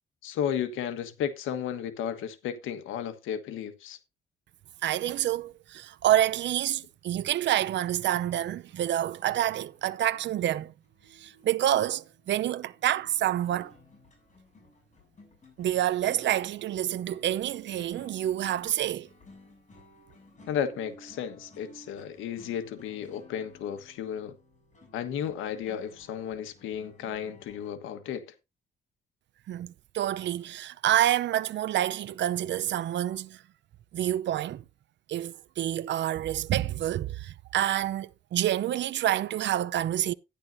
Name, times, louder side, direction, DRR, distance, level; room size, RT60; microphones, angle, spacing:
voice 1, 0.2-4.0 20.5-24.3 24.9-28.3, left 8 dB, 90° left, 1.4 m, -33 dB
voice 2, 4.8-10.7 11.1-13.7 15.6-19.1 29.5-33.4 33.9-34.6 35.1-40.1, right 12 dB, 65° right, 0.7 m, -28 dB
sound 1, 8.0-27.7, left 1 dB, 35° left, 7.1 m, -56 dB
12.0 x 10.5 x 2.7 m
cardioid pair, 90°, 20 cm